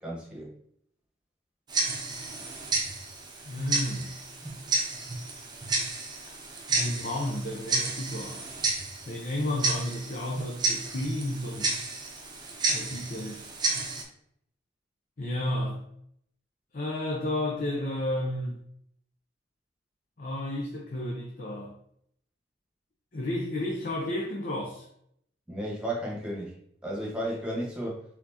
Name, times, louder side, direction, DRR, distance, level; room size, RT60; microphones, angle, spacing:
voice 1, 0.0-0.5 25.5-26.5 26.8-28.0, right 1 dB, 5° right, -3 dB, 1.3 m, -33 dB
Tick-tock, 1.7-14.0, right 3 dB, 25° right, 0.7 m, -31 dB
voice 2, 3.5-4.1 6.7-8.4 9.1-11.8 12.7-13.4 15.2-15.8 16.7-18.5 20.2-21.7 23.1-24.9, left 1 dB, 50° left, -1 dB, 0.7 m, -32 dB
4.3 x 3.9 x 2.8 m, 0.69 s
head